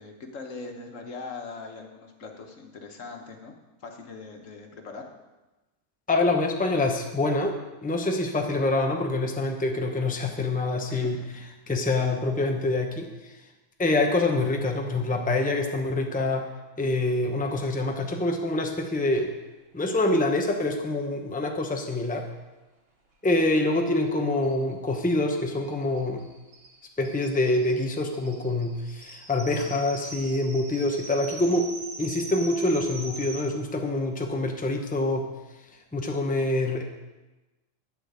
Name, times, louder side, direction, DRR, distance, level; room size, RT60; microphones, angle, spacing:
voice 1, 0.0-3.5 3.8-5.1 10.9-11.4, left 4 dB, 75° left, 3 dB, 1.6 m, -41 dB
voice 2, 6.1-11.2 11.7-13.4 13.8-16.5 16.8-19.4 19.7-22.3 23.2-26.3 27.0-31.7 32.0-35.3 35.9-36.8, left 2 dB, 10° left, 3 dB, 0.8 m, -26 dB
sound 1, 23.7-23.8 24.1-24.2 24.4-33.4, right 2 dB, 50° right, 1.7 m, -42 dB
12.0 x 4.5 x 8.0 m, 1.1 s
omnidirectional pair, 1.3 m